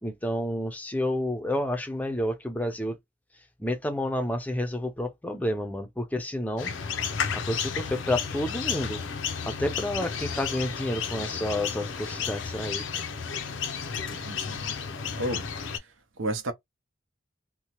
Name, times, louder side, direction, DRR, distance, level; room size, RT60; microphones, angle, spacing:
voice 1, 0.0-3.0 3.6-6.7 7.3-9.0 9.5-12.8, left 1 dB, 10° left, 0.5 m, -30 dB
sound 1, 6.6-15.8, left 6 dB, 80° left, 0.5 m, -32 dB
voice 2, 14.1-14.8 15.2-16.5, right 1 dB, 90° right, 0.7 m, -33 dB
2.8 x 2.1 x 2.9 m
head